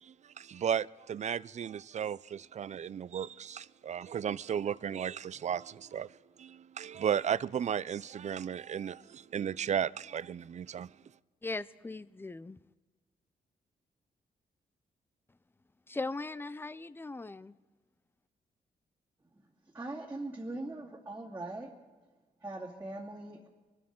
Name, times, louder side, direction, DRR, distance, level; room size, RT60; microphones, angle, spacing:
voice 1, 0.0-6.1 6.4-10.9, right 8 dB, 45° right, 0.4 m, -34 dB
voice 2, 11.4-12.6 15.9-17.6, left 3 dB, 15° left, 0.5 m, -39 dB
voice 3, 19.7-21.7 22.4-23.5, right 2 dB, 15° right, 2.3 m, -41 dB
24.0 x 12.5 x 3.8 m
cardioid pair, 90°, 17 cm